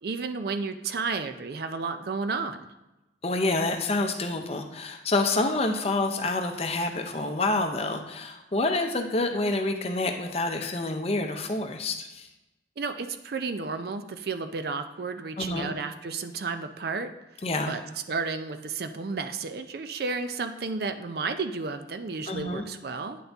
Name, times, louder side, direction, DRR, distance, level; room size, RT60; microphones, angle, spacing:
voice 1, 0.0-2.7 12.8-17.1 17.7-17.8 18.1-23.2, right 4 dB, 55° right, 9 dB, 0.4 m, -32 dB
voice 2, 3.2-12.3 15.4-15.7 17.4-17.8 22.3-22.6, left 2 dB, 35° left, 5 dB, 0.6 m, -28 dB
9.2 x 4.0 x 3.4 m, 0.99 s
head